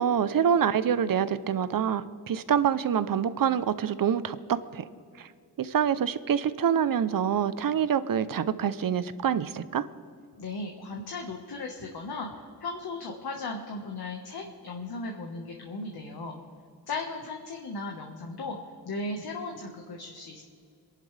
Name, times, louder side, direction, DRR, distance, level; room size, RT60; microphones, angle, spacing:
voice 1, 0.0-4.9 5.2-5.3 5.6-9.9, right 8 dB, 55° right, 14 dB, 0.7 m, -26 dB
voice 2, 10.4-12.3 12.6-16.4 16.9-18.6 18.8-20.4, left 3 dB, 65° left, 1 dB, 1.5 m, -36 dB
27.0 x 11.5 x 3.4 m, 2.2 s
wide cardioid pair, 115°, 40 cm